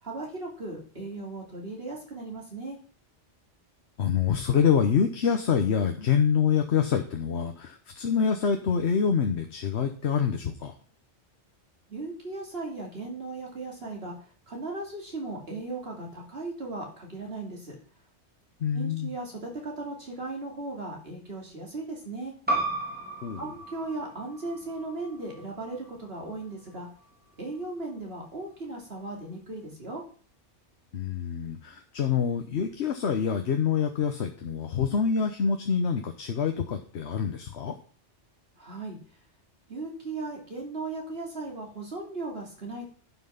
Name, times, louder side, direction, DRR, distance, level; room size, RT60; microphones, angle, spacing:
voice 1, 0.0-2.8 11.9-17.8 18.7-22.3 23.4-26.9 27.4-30.0 38.6-39.0 39.7-42.9, right 2 dB, 60° right, 0 dB, 3.1 m, -37 dB
voice 2, 4.0-10.7 18.6-19.1 23.2-23.5 30.9-37.7, left 7 dB, 70° left, 6 dB, 1.2 m, -26 dB
sound 1, 22.5-27.6, right 2 dB, 10° right, 2.7 m, -35 dB
11.0 x 5.9 x 5.7 m, 0.42 s
omnidirectional pair, 1.2 m